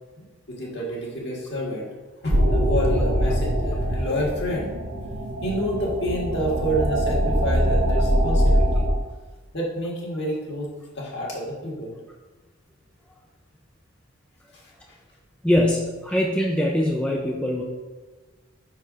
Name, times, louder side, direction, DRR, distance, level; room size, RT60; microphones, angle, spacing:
voice 1, 0.2-1.9 2.2-4.8 5.4-8.8 9.5-10.7 11.0-12.0 14.5-14.9, equal, 55° left, -3 dB, 1.8 m, -29 dB
sound 1, 2.3-8.9, equal, 65° right, 1.1 m, -22 dB
voice 2, 15.4-17.6, left 1 dB, 5° left, -1 dB, 0.5 m, -22 dB
5.8 x 4.7 x 5.1 m, 1.3 s
head